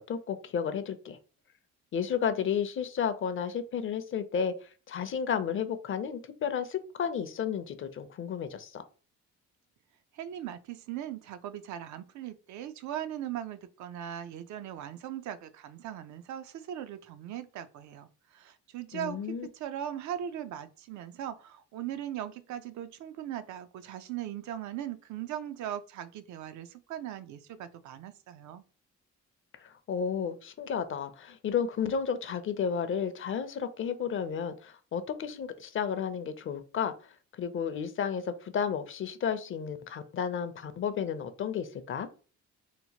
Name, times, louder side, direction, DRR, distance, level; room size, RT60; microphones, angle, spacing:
voice 1, 0.1-1.2 1.9-8.8 18.9-19.5 29.6-36.9 37.3-42.1, left 7 dB, 45° left, 10 dB, 0.5 m, -32 dB
voice 2, 10.1-28.6, right 11 dB, 70° right, 12 dB, 0.4 m, -39 dB
2.9 x 2.1 x 2.8 m, 0.37 s
cardioid pair, 90°, 30 cm